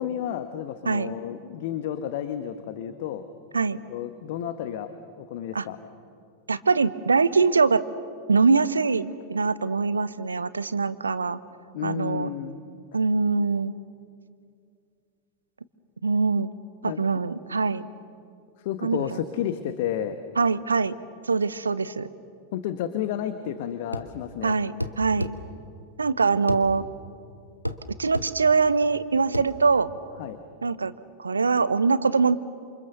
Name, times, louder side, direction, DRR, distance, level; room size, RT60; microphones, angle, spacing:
voice 1, 0.0-3.2 3.9-4.9 5.2-5.8 11.7-12.6 16.8-17.0 18.6-20.2 22.5-24.6 30.2-30.4, left 10 dB, 50° left, 10 dB, 1.2 m, -31 dB
voice 2, 6.5-7.8 8.3-11.4 11.8-12.3 12.9-13.7 16.0-16.5 16.8-17.8 18.8-19.1 20.4-20.9 21.3-22.1 24.4-25.3 26.0-26.8 28.0-29.9 30.6-30.9 31.2-32.4, right 4 dB, 75° right, 16 dB, 0.9 m, -23 dB
sound 1, 23.9-24.1 24.8-25.4 26.5-26.7 27.6-27.8 28.1-28.3 29.3-29.5, equal, 90° left, 1.2 m, -30 dB
28.0 x 27.5 x 6.8 m, 2.4 s
figure-of-eight pair, 90°, 0 cm